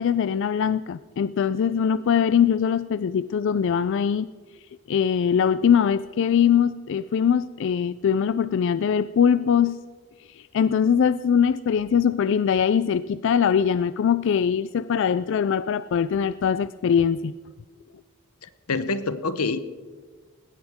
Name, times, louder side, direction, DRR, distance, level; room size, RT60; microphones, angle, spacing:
voice 1, 0.0-4.3 4.9-9.8 10.4-17.3, left 7 dB, 60° left, 15 dB, 0.3 m, -22 dB
voice 2, 18.4-19.6, left 3 dB, 90° left, 13 dB, 0.9 m, -27 dB
19.5 x 17.5 x 3.6 m, 1.5 s
head